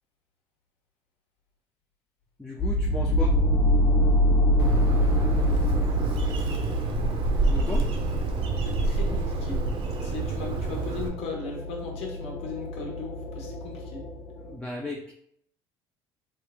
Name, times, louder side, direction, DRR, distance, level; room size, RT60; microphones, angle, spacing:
voice 1, 2.4-3.4 7.5-7.9 14.4-15.0, left 1 dB, 5° left, 0 dB, 0.4 m, -35 dB
sound 1, 2.6-14.5, equal, 45° left, 0.9 m, -26 dB
Bird, 4.6-11.1, right 3 dB, 60° right, 0.6 m, -28 dB
voice 2, 8.6-9.6 10.0-14.0, left 4 dB, 65° left, 1 dB, 1.1 m, -38 dB
3.2 x 2.3 x 3.6 m, 0.68 s
supercardioid pair, 85°, 11 cm